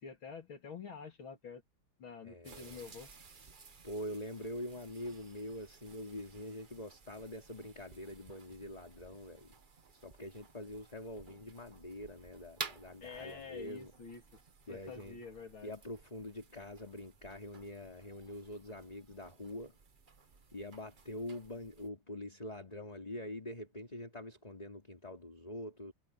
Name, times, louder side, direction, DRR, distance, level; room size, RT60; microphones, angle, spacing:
voice 1, 0.0-1.6 2.0-3.1 13.0-14.2 14.7-15.7, left 5 dB, 65° left, 3.5 m, -47 dB
voice 2, 2.2-2.8 3.8-9.5 9.9-13.9 14.7-15.2 15.6-19.7 20.5-25.9, left 1 dB, 15° left, 3.5 m, -45 dB
sound 1, 2.4-21.9, right 5 dB, 35° right, 0.8 m, -54 dB
omnidirectional pair, 2.4 m